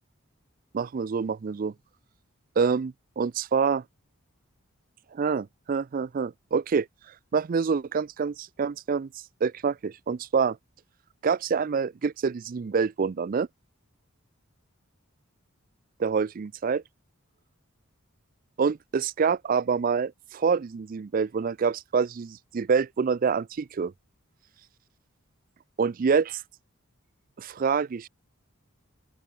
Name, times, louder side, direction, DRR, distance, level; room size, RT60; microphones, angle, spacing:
voice 1, 0.7-1.7 2.6-3.8 5.1-6.9 7.3-9.1 9.4-10.6 11.2-13.5 16.0-16.8 18.6-23.9 25.8-26.2 27.4-28.1, right 5 dB, 40° right, 0.4 m, -26 dB
open air
head